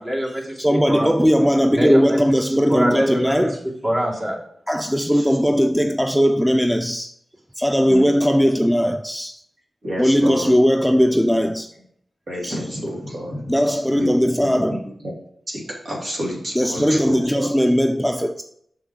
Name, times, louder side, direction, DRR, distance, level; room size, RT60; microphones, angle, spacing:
voice 1, 0.0-1.1 1.7-2.2 2.5-3.5 3.8-4.4, equal, 40° right, 2.7 m, -24 dB
voice 2, 0.6-3.6 4.7-7.1 7.6-9.4 10.0-11.7 12.4-12.5 13.5-14.9 16.5-18.4, equal, 5° right, 0.6 m, -18 dB
voice 3, 9.8-10.5 10.9-11.0 12.3-13.4 14.0-15.1 15.5-17.5, equal, 65° right, 3.4 m, -30 dB
6.3 x 6.2 x 4.8 m
cardioid pair, 50°, 0 cm